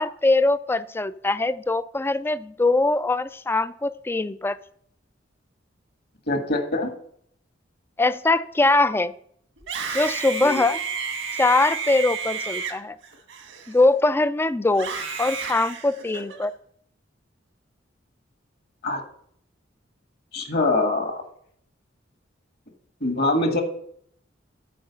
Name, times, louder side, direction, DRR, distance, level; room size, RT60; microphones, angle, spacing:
voice 1, 0.0-4.6 8.0-9.1 9.9-10.8 11.4-13.0 13.7-14.9 15.2-16.5, left 2 dB, 10° left, 15 dB, 0.3 m, -22 dB
voice 2, 6.3-6.9 10.4-10.6 18.8-19.0 20.3-21.2 23.0-23.6, left 2 dB, 55° left, 5 dB, 1.6 m, -23 dB
Screaming, 9.6-14.1 14.7-16.5, right 5 dB, 80° right, 1.6 m, -31 dB
9.4 x 4.7 x 6.9 m, 0.65 s
head